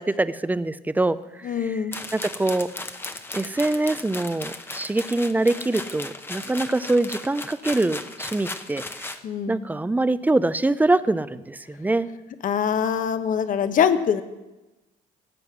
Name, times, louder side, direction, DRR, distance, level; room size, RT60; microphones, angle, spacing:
voice 1, 0.0-1.8 2.1-2.7 3.3-8.8 9.5-12.1, right 2 dB, 10° right, 15 dB, 0.5 m, -24 dB
voice 2, 1.4-1.9 9.2-9.7 12.4-14.2, left 7 dB, 50° left, 11 dB, 1.0 m, -23 dB
sound 1, 1.9-9.2, left 2 dB, 15° left, 0.8 m, -36 dB
17.0 x 7.6 x 6.0 m, 1.1 s
cardioid pair, 110°, 17 cm